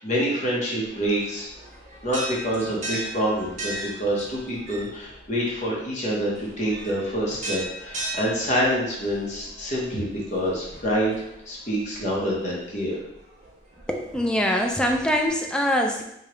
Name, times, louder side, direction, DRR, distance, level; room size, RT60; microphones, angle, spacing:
voice 1, 0.0-1.5 2.0-11.1 11.5-13.0, equal, 40° left, -4 dB, 0.9 m, -26 dB
sound 1, 0.8-15.3, right 1 dB, 45° right, 1.1 m, -39 dB
voice 2, 13.9-16.0, equal, 5° left, 2 dB, 0.4 m, -23 dB
4.8 x 2.4 x 3.0 m, 0.80 s
head